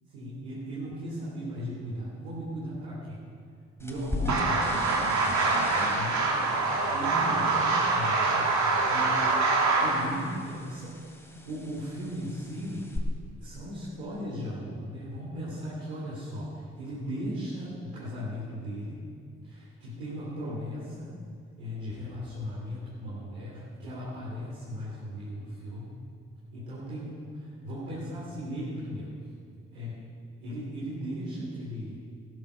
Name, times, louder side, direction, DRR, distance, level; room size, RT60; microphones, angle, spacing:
voice 1, 0.1-3.2 3.8-4.9 5.9-6.6 6.9-9.2 9.8-11.0 11.4-12.9 13.4-19.0 19.4-21.1 21.6-26.0 26.5-29.1 29.7-30.0 30.4-32.0, equal, 85° right, -10 dB, 3.5 m, -37 dB
sound 1, 3.8-13.0, left 2 dB, 10° left, 2.9 m, -41 dB
sound 2, 4.3-10.0, right 3 dB, 60° right, 2.7 m, -25 dB
15.5 x 12.0 x 6.6 m, 2.2 s
hypercardioid pair, 40°, 32 cm